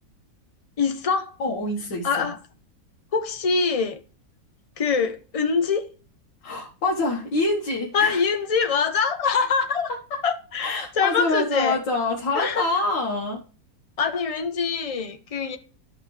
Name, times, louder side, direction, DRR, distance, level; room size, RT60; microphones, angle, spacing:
voice 1, 0.8-1.3 2.0-2.4 3.1-4.0 4.8-5.9 7.9-9.9 10.2-11.8 12.3-12.7 14.0-15.6, left 5 dB, 45° left, 0.4 m, -24 dB
voice 2, 1.4-2.3 6.4-8.2 10.6-13.4, left 2 dB, 85° left, 2.2 m, -26 dB
12.5 x 6.0 x 3.3 m
omnidirectional pair, 1.9 m